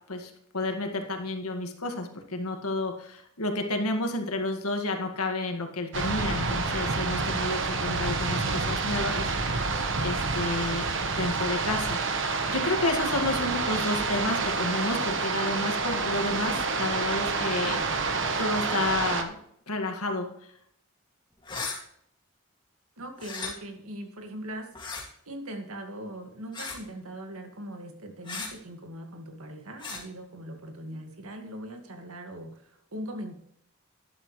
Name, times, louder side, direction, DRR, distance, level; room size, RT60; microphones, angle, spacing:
voice 1, 0.1-9.7 10.0-12.0 12.5-18.0 18.4-19.4 19.7-20.3, left 2 dB, 85° left, 4 dB, 2.0 m, -31 dB
sound 1, 5.9-19.2, right 4 dB, 55° right, 1.1 m, -28 dB
sound 2, 21.4-21.8 23.2-23.5 24.7-25.0 26.5-26.8 28.2-28.5 29.8-30.0, left 4 dB, 20° left, 2.3 m, -35 dB
voice 2, 23.0-33.3, right 1 dB, 75° right, 4 dB, 2.0 m, -40 dB
12.0 x 11.0 x 3.2 m, 0.71 s
head